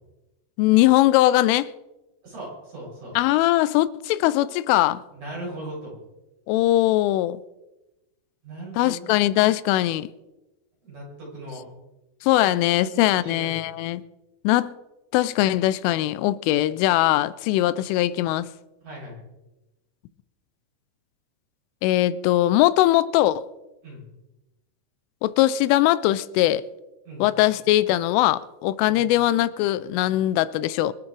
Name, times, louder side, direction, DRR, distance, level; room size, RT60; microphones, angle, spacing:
voice 1, 0.6-1.7 3.2-5.0 6.5-7.4 8.8-10.1 12.2-14.0 14.4-14.8 15.1-18.5 21.8-23.5 25.2-26.6 27.2-30.9, left 15 dB, 90° left, 3.2 m, -21 dB
voice 2, 2.2-3.2 5.1-6.0 8.4-9.1 10.8-11.6 12.5-13.8 18.8-19.2 23.8-24.1 27.0-27.3 28.8-29.2, right 1 dB, 40° right, 8.3 m, -39 dB
26.0 x 8.7 x 4.8 m
omnidirectional pair, 5.6 m